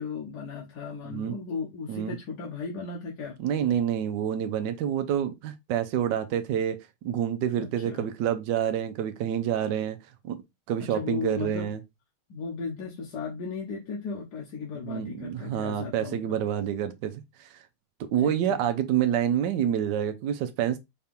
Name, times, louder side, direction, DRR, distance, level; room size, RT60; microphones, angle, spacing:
voice 1, 0.0-3.4 7.6-8.1 10.8-11.7 12.3-16.4 18.2-18.6, left 5 dB, 70° left, 1.5 m, -36 dB
voice 2, 3.4-10.0 10.2-10.4 10.7-11.8 14.8-17.6 18.0-20.8, right 9 dB, 85° right, 1.2 m, -28 dB
4.9 x 2.8 x 3.4 m
omnidirectional pair, 1.9 m